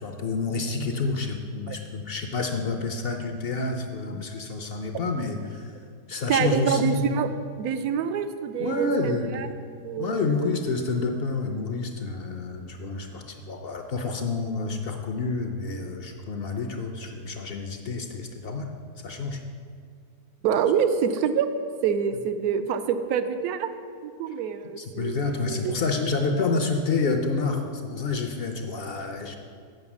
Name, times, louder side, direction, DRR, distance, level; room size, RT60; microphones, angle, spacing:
voice 1, 0.0-5.7 6.1-7.1 8.6-9.4 10.0-18.7 19.0-19.4 24.8-29.4, left 3 dB, 60° left, 5 dB, 0.6 m, -29 dB
voice 2, 6.3-7.3 7.6-9.5 9.8-10.5 20.4-21.5 21.8-23.7 24.0-25.7, right 7 dB, 80° right, 10 dB, 1.1 m, -26 dB
7.8 x 5.6 x 7.1 m, 2.2 s
omnidirectional pair, 1.6 m